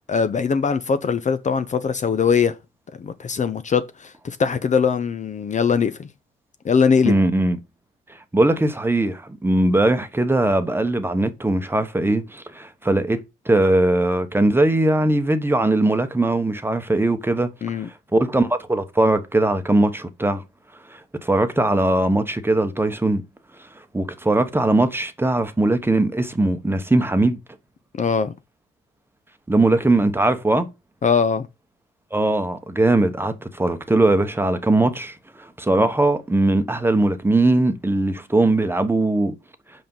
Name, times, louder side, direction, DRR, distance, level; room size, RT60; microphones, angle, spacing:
voice 1, 0.1-2.5 3.0-6.1 6.6-7.2 17.6-17.9 28.0-28.3 31.0-31.5, left 6 dB, 40° left, 0.7 m, -21 dB
voice 2, 7.1-7.6 8.3-17.5 18.1-20.4 20.9-23.2 23.9-27.4 29.5-30.7 32.1-39.3, right 2 dB, 10° right, 1.0 m, -20 dB
5.6 x 5.2 x 5.5 m
cardioid pair, 90°, 20 cm